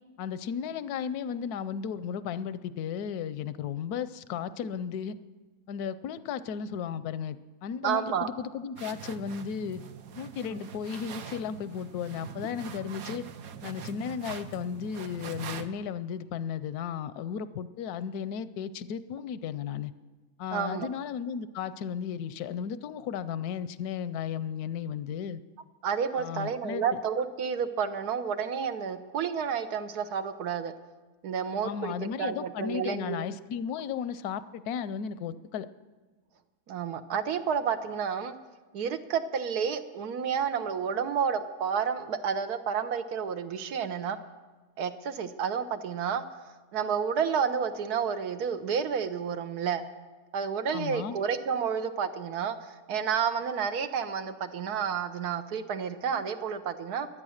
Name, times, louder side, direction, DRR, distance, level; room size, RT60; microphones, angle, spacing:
voice 1, 0.2-5.2 5.7-9.8 10.2-13.2 13.6-19.9 20.4-25.4 26.1-27.0 31.6-35.7 50.7-51.2, left 7 dB, 85° left, 15 dB, 1.1 m, -35 dB
voice 2, 7.8-8.3 10.5-10.6 20.5-20.9 25.8-30.7 31.2-33.2 36.7-38.3 38.7-44.2 44.8-46.2 46.7-49.8 50.3-57.1, right 7 dB, 90° right, 9 dB, 1.5 m, -30 dB
sound 1, 8.8-15.7, right 8 dB, 70° right, 1.2 m, -43 dB
23.0 x 9.1 x 6.4 m, 1.3 s
omnidirectional pair, 1.6 m